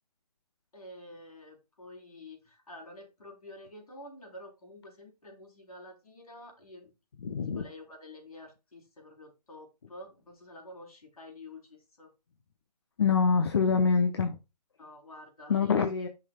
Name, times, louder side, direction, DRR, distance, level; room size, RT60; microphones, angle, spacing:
voice 1, 0.7-12.1 14.8-16.1, left 1 dB, 60° left, 3.7 m, -49 dB
voice 2, 7.2-7.6 13.0-14.4 15.5-16.1, left 5 dB, 40° left, 0.7 m, -25 dB
10.5 x 5.7 x 2.3 m
figure-of-eight pair, 145°, 21 cm